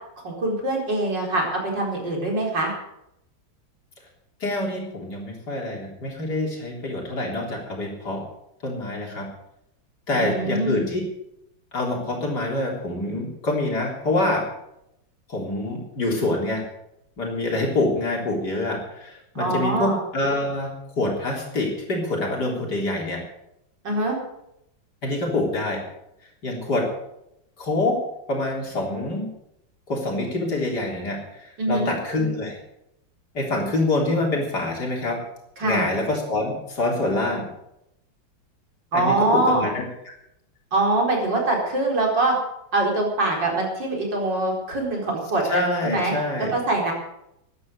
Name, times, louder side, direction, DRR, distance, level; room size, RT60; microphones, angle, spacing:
voice 1, 0.2-1.4 1.7-2.7 10.1-10.8 19.3-20.0 23.8-24.2 31.6-31.9 35.6-35.9 38.9-39.6 40.7-42.3 42.7-46.1 46.5-46.9, right 2 dB, 65° right, -1 dB, 4.7 m, -23 dB
voice 2, 4.4-8.2 8.6-9.3 10.1-11.0 11.7-14.5 15.3-16.6 17.2-23.2 25.0-25.8 26.4-26.9 27.6-29.3 29.9-32.6 33.3-35.2 35.6-37.5 38.9-39.8 45.5-46.5, left 2 dB, 55° left, -1 dB, 4.2 m, -26 dB
14.0 x 11.0 x 6.6 m, 0.81 s
omnidirectional pair, 2.1 m